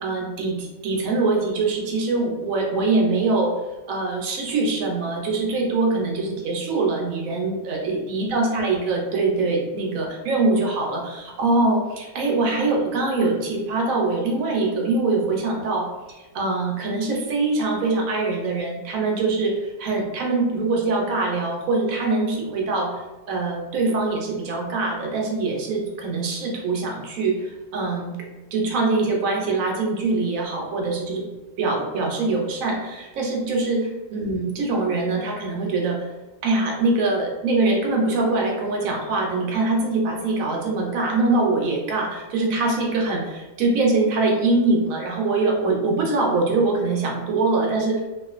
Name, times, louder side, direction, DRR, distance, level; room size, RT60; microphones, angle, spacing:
voice 1, 0.0-3.5 3.9-22.9 23.3-28.1 28.5-31.2 31.6-33.8 34.1-36.1 36.4-48.0, right 3 dB, 75° right, -1 dB, 1.0 m, -23 dB
2.4 x 2.3 x 2.3 m, 1.1 s
omnidirectional pair, 1.5 m